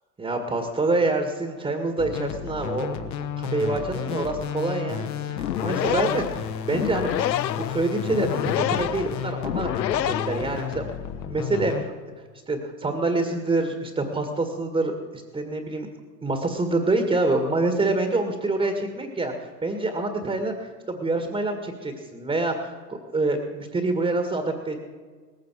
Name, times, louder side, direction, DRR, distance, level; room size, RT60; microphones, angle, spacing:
voice 1, 0.2-7.3 7.6-10.8 11.3-11.9 12.5-15.9 16.2-24.8, right 2 dB, 10° right, 5 dB, 1.9 m, -26 dB
sound 1, 2.0-11.8, left 8 dB, 35° left, 1.4 m, -33 dB
sound 2, 5.3-11.0, left 11 dB, 80° left, 0.7 m, -28 dB
19.5 x 15.5 x 4.7 m, 1.5 s
figure-of-eight pair, 90°, 50 cm